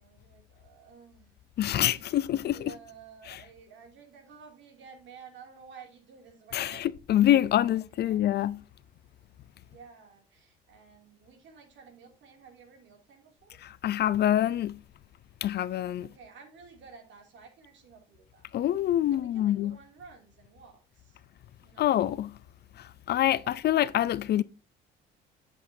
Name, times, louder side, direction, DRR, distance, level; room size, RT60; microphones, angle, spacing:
voice 1, 0.0-1.3 1.7-7.3 7.6-8.3 9.6-13.6 16.0-18.5 19.0-21.2 21.6-21.9 23.4-23.8, right 5 dB, 65° right, 2.7 m, -53 dB
voice 2, 1.6-2.7 3.3-3.4 6.5-8.6 13.6-14.8 15.4-16.1 18.5-19.8 21.8-22.4 22.8-24.4, left 12 dB, 50° left, 0.5 m, -26 dB
8.1 x 7.9 x 2.7 m
supercardioid pair, 65°, 21 cm